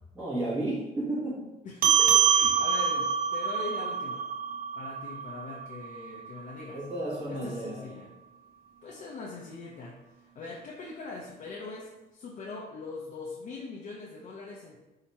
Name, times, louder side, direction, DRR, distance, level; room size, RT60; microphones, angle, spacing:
voice 1, 0.1-1.5 6.7-7.9, right 1 dB, 15° right, -9 dB, 1.0 m, -32 dB
voice 2, 1.6-4.3 4.8-6.8 7.3-8.1 8.8-10.0 10.2-14.8, left 3 dB, 50° left, -4 dB, 0.6 m, -41 dB
sound 1, 1.8-6.6, right 7 dB, 60° right, 0.6 m, -26 dB
2.8 x 2.8 x 4.4 m, 1.0 s
cardioid pair, 135°, 17 cm